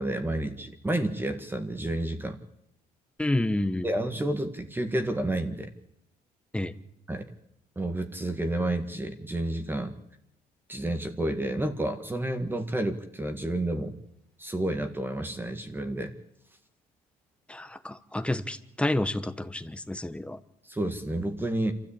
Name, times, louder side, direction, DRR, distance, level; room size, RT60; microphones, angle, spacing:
voice 1, 0.0-2.4 3.8-5.7 7.1-7.3 7.7-9.9 10.7-14.0 14.4-16.1 20.7-21.7, right 1 dB, 10° right, 6 dB, 1.8 m, -30 dB
voice 2, 3.2-3.9 6.5-6.7 17.5-20.4, left 1 dB, 5° left, 12 dB, 1.1 m, -29 dB
27.0 x 13.5 x 8.7 m, 0.82 s
cardioid pair, 110°, 17 cm